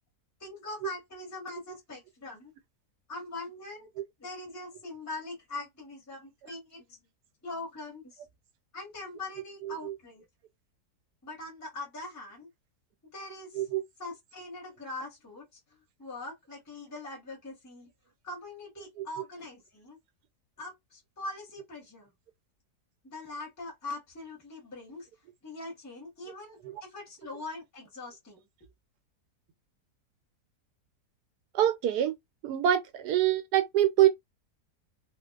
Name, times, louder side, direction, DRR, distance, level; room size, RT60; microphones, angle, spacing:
voice 1, 0.4-2.5 3.1-3.9 4.2-7.0 7.4-8.2 8.7-10.2 11.2-12.5 13.1-13.7 14.0-15.6 16.0-17.9 18.2-20.0 20.6-22.1 23.0-25.1 25.4-28.5, left 2 dB, 15° left, 0.8 m, -42 dB
voice 2, 31.5-32.1 32.4-34.1, right 11 dB, 85° right, 1.1 m, -25 dB
2.5 x 2.2 x 2.3 m
omnidirectional pair, 1.7 m